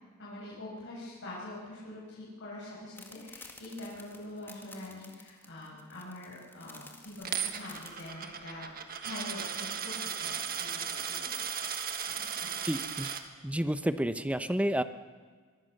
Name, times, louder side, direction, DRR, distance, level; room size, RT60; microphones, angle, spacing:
voice 1, 0.2-8.7 9.0-11.3 12.0-12.5, left 1 dB, 55° left, -6 dB, 6.3 m, -44 dB
sound 1, 3.0-8.1, left 3 dB, 10° left, 2.1 m, -51 dB
Coin (dropping), 7.3-13.2, right 7 dB, 45° right, 1.6 m, -36 dB
voice 2, 12.6-13.1 13.4-14.8, right 1 dB, 5° right, 11 dB, 0.8 m, -30 dB
23.5 x 23.5 x 6.6 m, 1.5 s
head